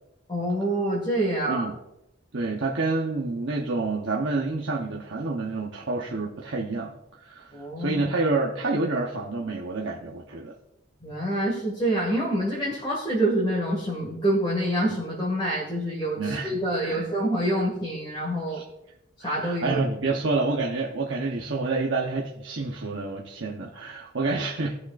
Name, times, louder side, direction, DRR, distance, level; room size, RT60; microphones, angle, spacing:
voice 1, 0.3-1.6 7.5-8.1 11.0-18.6 19.2-19.8, right 1 dB, 25° left, -4 dB, 1.9 m, -26 dB
voice 2, 2.3-7.5 7.8-10.5 16.2-16.6 16.8-17.1 18.5-18.6 19.2-24.7, right 3 dB, 65° right, -1 dB, 0.9 m, -28 dB
16.5 x 6.5 x 2.5 m, 0.90 s
head